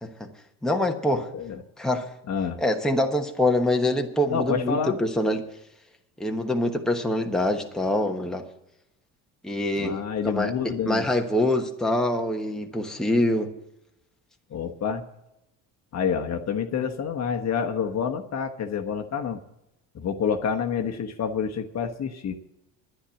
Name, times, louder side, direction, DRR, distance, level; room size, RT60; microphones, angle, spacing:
voice 1, 0.6-1.3 1.8-2.1 2.6-5.4 6.2-8.4 9.4-10.5 10.9-13.5, left 1 dB, ahead, 3 dB, 1.2 m, -25 dB
voice 2, 2.3-2.6 4.3-5.0 9.8-11.0 14.5-15.0 15.9-19.4 19.9-22.4, left 7 dB, 40° left, 5 dB, 1.2 m, -28 dB
10.0 x 10.0 x 7.1 m, 0.88 s
supercardioid pair, 95°, 39 cm